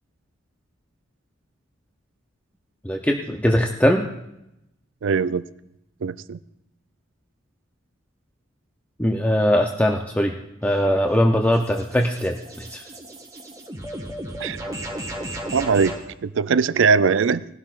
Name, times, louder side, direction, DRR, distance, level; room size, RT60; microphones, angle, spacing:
voice 1, 2.8-4.1 9.0-10.3 10.6-12.8, equal, 10° left, 2 dB, 0.6 m, -21 dB
voice 2, 5.0-5.4 6.0-6.4 14.4-14.6 15.5-15.9 16.2-17.5, right 5 dB, 65° right, 16 dB, 0.4 m, -20 dB
sound 1, 10.6-16.1, right 1 dB, 15° right, 1.5 m, -35 dB
19.0 x 12.0 x 2.5 m, 0.85 s
head